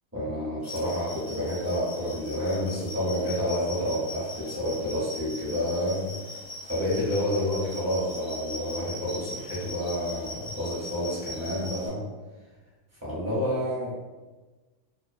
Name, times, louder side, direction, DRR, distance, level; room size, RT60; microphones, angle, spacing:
voice 1, 0.1-6.1 6.7-12.0 13.0-13.9, equal, 15° right, -8 dB, 0.7 m, -29 dB
sound 1, 0.6-11.9, left 1 dB, 55° left, 0.6 m, -40 dB
2.3 x 2.2 x 2.5 m, 1.2 s
omnidirectional pair, 1.3 m